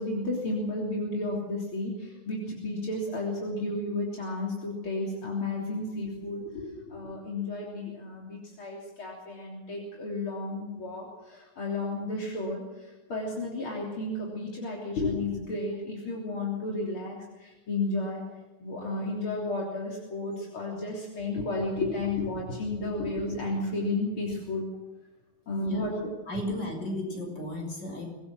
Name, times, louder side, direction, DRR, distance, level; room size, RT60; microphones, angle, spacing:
voice 1, 0.0-18.2 18.6-24.6 25.5-26.1, left 2 dB, 75° left, -3 dB, 4.3 m, -32 dB
voice 2, 26.3-28.1, equal, 55° left, 2 dB, 6.9 m, -34 dB
25.5 x 20.0 x 6.3 m, 1.1 s
omnidirectional pair, 2.3 m